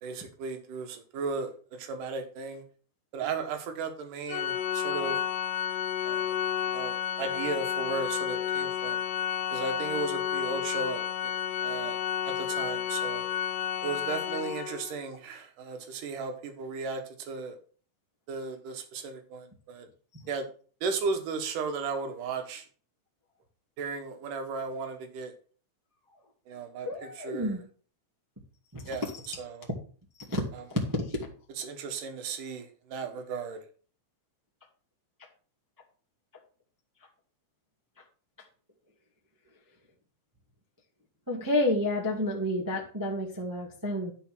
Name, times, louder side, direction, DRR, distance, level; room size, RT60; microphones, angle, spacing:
voice 1, 0.0-2.6 3.1-5.2 6.0-6.4 6.7-9.0 9.5-11.3 11.6-12.0 12.2-13.2 13.8-17.6 18.3-19.9 20.3-20.5 20.8-22.6 23.8-25.3 26.5-27.6 28.9-29.7 30.5-30.6 31.6-33.6, right 4 dB, 80° right, 7 dB, 3.0 m, -35 dB
Organ, 4.3-15.0, left 10 dB, 85° left, 2.4 m, -31 dB
voice 2, 26.8-27.6 28.7-28.8 30.3-30.4 30.7-31.2 41.3-44.1, left 1 dB, 10° right, -2 dB, 1.3 m, -29 dB
10.5 x 5.2 x 6.1 m, 0.42 s
omnidirectional pair, 3.7 m